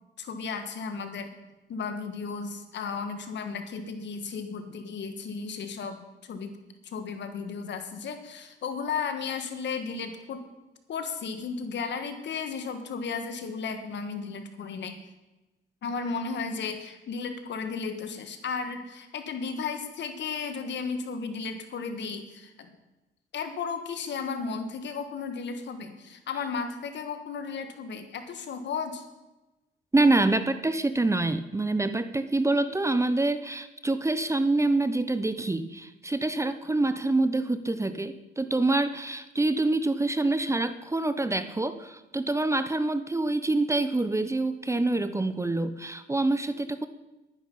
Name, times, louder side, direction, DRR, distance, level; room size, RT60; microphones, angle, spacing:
voice 1, 0.2-1.3 1.7-6.0 6.2-6.5 6.8-10.4 10.9-15.0 15.8-22.7 23.3-29.0, left 5 dB, 65° left, 7 dB, 1.6 m, -34 dB
voice 2, 29.9-46.9, right 2 dB, 15° right, 11 dB, 0.7 m, -26 dB
11.5 x 10.0 x 5.5 m, 1.0 s
cardioid pair, 90°, 20 cm